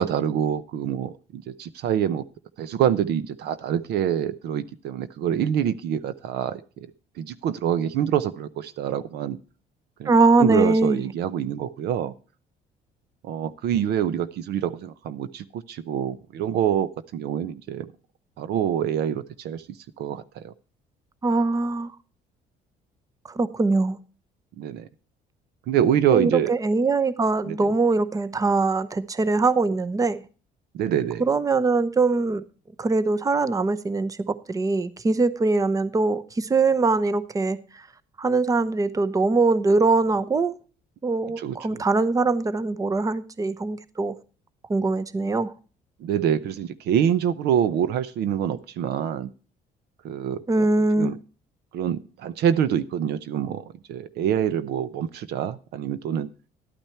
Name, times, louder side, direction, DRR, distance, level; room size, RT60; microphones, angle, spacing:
voice 1, 0.0-2.2 2.6-6.9 7.2-9.4 10.0-10.1 10.4-12.1 13.2-17.9 18.4-19.6 20.0-20.5 24.6-24.9 25.7-26.5 27.4-27.7 30.7-31.2 41.4-41.8 46.0-49.3 50.0-50.7 51.0-51.1 51.7-56.3, right 9 dB, 75° right, 0.8 m, -26 dB
voice 2, 10.1-11.0 21.2-21.9 23.2-24.0 26.1-30.2 31.2-32.4 32.8-37.9 38.2-40.6 41.0-44.1 44.7-45.5 50.5-51.2, right 3 dB, 20° right, 0.8 m, -22 dB
12.0 x 8.9 x 4.5 m
cardioid pair, 110°, 17 cm